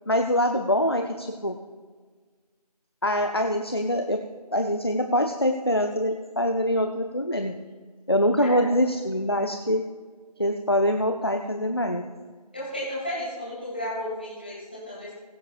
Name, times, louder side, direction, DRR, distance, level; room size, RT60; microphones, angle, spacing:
voice 1, 0.1-1.6 3.0-4.2 4.5-7.6 8.1-9.9 10.4-12.0, equal, 40° left, 5 dB, 0.7 m, -24 dB
voice 2, 8.4-8.7 12.5-15.1, left 1 dB, 15° left, -7 dB, 2.6 m, -33 dB
21.0 x 9.4 x 2.5 m, 1.5 s
figure-of-eight pair, 175°, 21 cm